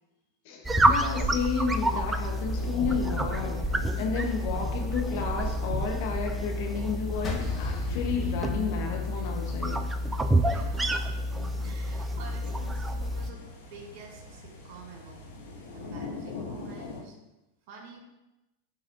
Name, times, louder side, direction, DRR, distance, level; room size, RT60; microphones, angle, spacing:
voice 1, 0.4-9.8, left 5 dB, 60° left, 2 dB, 1.1 m, -32 dB
sound 1, 0.6-13.3, right 1 dB, 10° right, 0.5 m, -29 dB
sound 2, 1.5-17.0, left 3 dB, 85° left, 2.2 m, -42 dB
sound 3, 7.2-9.6, left 3 dB, 25° left, 1.4 m, -34 dB
voice 2, 10.5-11.2 11.6-15.2 15.7-17.2 17.7-18.0, right 4 dB, 55° right, 0 dB, 2.4 m, -48 dB
11.5 x 4.1 x 2.6 m, 0.95 s
hypercardioid pair, 105°, 0 cm